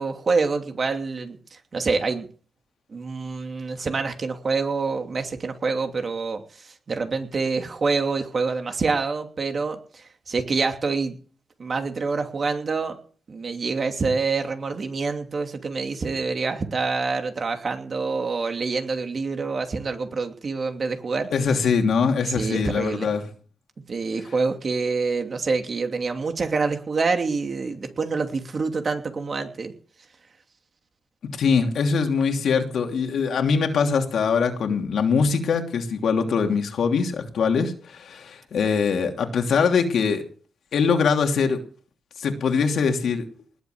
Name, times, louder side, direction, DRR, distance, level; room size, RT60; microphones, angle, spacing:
voice 1, 0.0-2.3 2.9-11.2 11.6-13.0 13.3-21.3 22.2-23.1 23.9-29.7, right 4 dB, 45° right, 5 dB, 2.8 m, -26 dB
voice 2, 21.3-23.3 31.4-40.2 40.7-41.6 42.2-43.2, left 5 dB, 80° left, 4 dB, 3.0 m, -22 dB
20.0 x 8.2 x 7.9 m, 0.43 s
cardioid pair, 95°, 0 cm